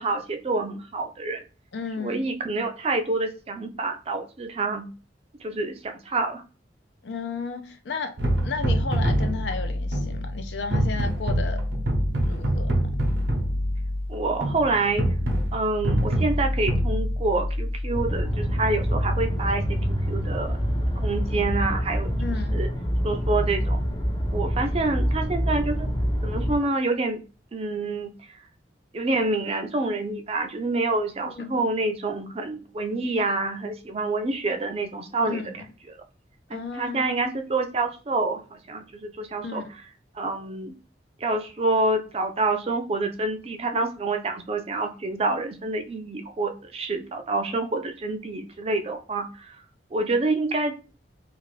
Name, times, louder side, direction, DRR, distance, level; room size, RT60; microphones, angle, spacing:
voice 1, 0.0-1.4 2.0-4.9 5.4-6.4 14.1-15.1 15.5-20.6 21.0-22.7 23.0-23.8 24.3-25.9 26.2-27.2 27.5-28.1 28.9-36.0 36.5-39.6 40.1-40.7 41.2-49.6 49.9-50.7, right 2 dB, 35° right, 0.4 m, -27 dB
voice 2, 1.7-2.2 7.0-8.1 8.4-11.6 12.2-12.9 22.2-22.6 31.2-31.7 35.3-35.6 36.5-37.0 39.4-39.6, left 4 dB, 75° left, 0.5 m, -33 dB
sound 1, 8.2-18.3, equal, 85° right, 0.7 m, -25 dB
sound 2, 17.9-26.6, equal, 25° left, 0.5 m, -26 dB
2.5 x 2.5 x 3.1 m
head